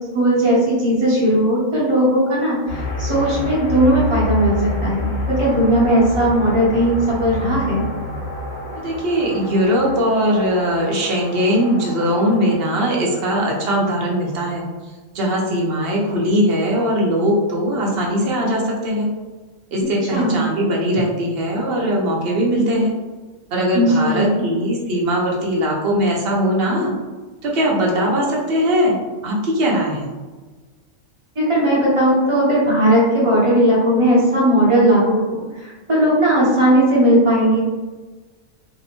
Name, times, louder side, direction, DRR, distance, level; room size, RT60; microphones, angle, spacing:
voice 1, 0.1-4.5 4.8-7.8 20.1-20.5 23.7-24.5 31.4-37.6, right 1 dB, 30° right, -6 dB, 0.8 m, -17 dB
sound 1, 2.7-12.5, left 2 dB, 50° left, 0.8 m, -28 dB
voice 2, 8.7-14.6 15.1-19.1 19.7-22.9 23.5-26.9 27.4-28.9 29.2-30.1, equal, 55° right, -2 dB, 0.8 m, -20 dB
2.7 x 2.1 x 2.9 m, 1.3 s
omnidirectional pair, 1.3 m